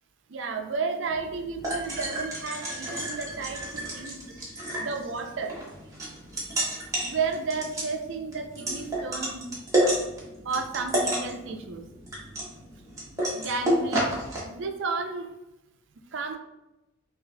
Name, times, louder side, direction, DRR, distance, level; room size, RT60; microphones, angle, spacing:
voice 1, 0.3-4.2 4.8-5.6 7.0-9.5 10.4-11.8 13.4-14.1 14.4-15.3 16.1-16.4, right 4 dB, 60° right, 5 dB, 0.4 m, -32 dB
sound 1, 1.1-14.4, right 1 dB, 15° right, 0.9 m, -31 dB
6.1 x 2.5 x 2.2 m, 0.94 s
head